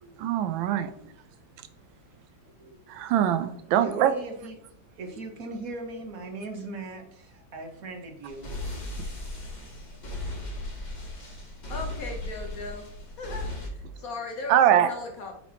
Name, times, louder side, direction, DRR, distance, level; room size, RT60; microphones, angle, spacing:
voice 1, 0.2-0.9 2.9-4.1 14.5-14.9, right 11 dB, 85° right, 11 dB, 1.3 m, -22 dB
voice 2, 2.4-2.8 3.8-4.6 5.0-8.5, right 2 dB, 55° right, 3 dB, 1.2 m, -39 dB
sound 1, 8.3-13.7, left 2 dB, 30° left, 0.8 m, -36 dB
voice 3, 11.7-12.9 13.2-15.4, left 3 dB, 55° left, 2 dB, 1.1 m, -37 dB
8.4 x 4.4 x 2.8 m, 0.71 s
omnidirectional pair, 2.1 m